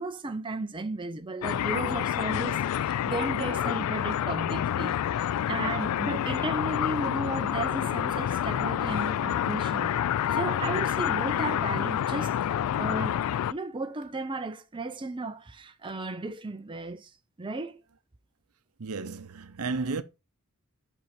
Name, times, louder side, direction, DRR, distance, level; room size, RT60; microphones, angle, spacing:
voice 1, 0.0-9.9 10.3-12.4 12.8-13.2 13.5-17.1 17.4-17.8, right 2 dB, 20° right, 0.6 m, -34 dB
sound 1, 1.4-13.5, left 10 dB, 75° left, 0.3 m, -28 dB
voice 2, 18.8-20.0, right 4 dB, 75° right, 0.7 m, -32 dB
5.9 x 5.5 x 4.3 m
head